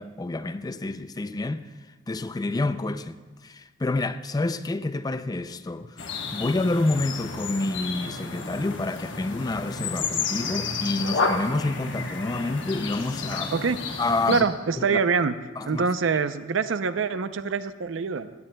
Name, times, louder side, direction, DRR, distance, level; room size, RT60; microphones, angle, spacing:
voice 1, 0.0-1.6 2.1-6.1 6.3-13.6 14.0-14.5 14.8-15.0 15.6-15.8, left 2 dB, 20° left, 0.4 m, -28 dB
sound 1, 6.0-14.4, left 4 dB, 70° left, 1.2 m, -31 dB
voice 2, 14.3-15.3 15.6-18.3, right 5 dB, 80° right, 0.6 m, -25 dB
18.5 x 16.5 x 2.2 m
head